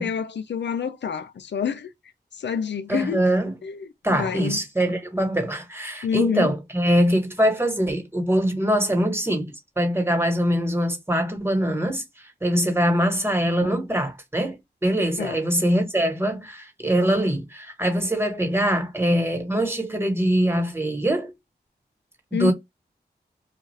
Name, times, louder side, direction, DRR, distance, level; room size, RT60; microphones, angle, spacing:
voice 1, 0.0-1.9 2.4-3.2 3.6-3.9 4.2-4.6 6.0-6.5 13.6-13.7 15.2-15.4 22.3-22.5, left 7 dB, 85° left, 0.5 m, -27 dB
voice 2, 2.9-3.5 4.0-12.0 12.4-21.3 22.4-22.5, equal, 15° right, 1.3 m, -23 dB
2.4 x 2.4 x 3.2 m
cardioid pair, 40°, 18 cm